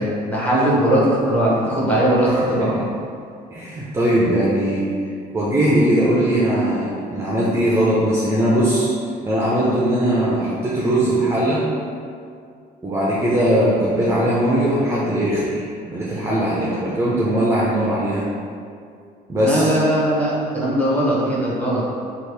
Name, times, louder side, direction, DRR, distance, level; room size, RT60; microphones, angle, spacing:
voice 1, 0.0-2.8 19.4-21.8, right 1 dB, 10° left, -7 dB, 0.9 m, -19 dB
voice 2, 2.3-2.7 3.5-4.9 5.3-8.9 9.2-11.7 12.8-18.3 19.3-19.8, right 1 dB, 15° right, -7 dB, 0.5 m, -20 dB
2.9 x 2.4 x 3.3 m, 2.3 s
cardioid pair, 110°, 17 cm